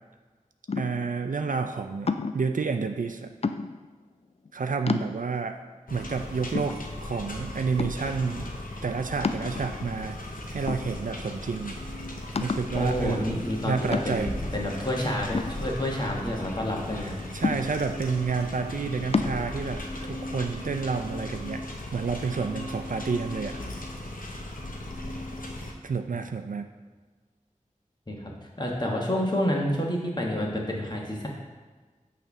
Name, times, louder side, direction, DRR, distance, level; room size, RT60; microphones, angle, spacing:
sound 1, 0.7-1.2 2.1-2.5 3.4-3.9 4.5-4.6 4.9-5.5 6.0-6.1 6.5-7.3 7.8-8.2 9.2-10.0 10.7-11.3 11.6-11.7 12.4-12.8 13.9-14.4 15.3-16.2 17.4-18.0 19.1-19.4, left 4 dB, 45° left, 0.4 m, -30 dB
voice 1, 0.7-3.3 4.5-5.6 5.9-8.5 8.8-10.2 10.5-11.8 12.4-14.3 17.3-21.6 21.9-23.6 25.8-26.7, right 5 dB, 70° right, 7 dB, 0.5 m, -30 dB
sound 2, 5.9-25.7, left 1 dB, 80° left, 0.8 m, -37 dB
voice 2, 12.7-17.2 26.1-26.2 28.1-31.3, left 1 dB, 30° left, -2 dB, 1.5 m, -29 dB
6.4 x 3.3 x 6.0 m, 1.4 s
wide cardioid pair, 40°, 14 cm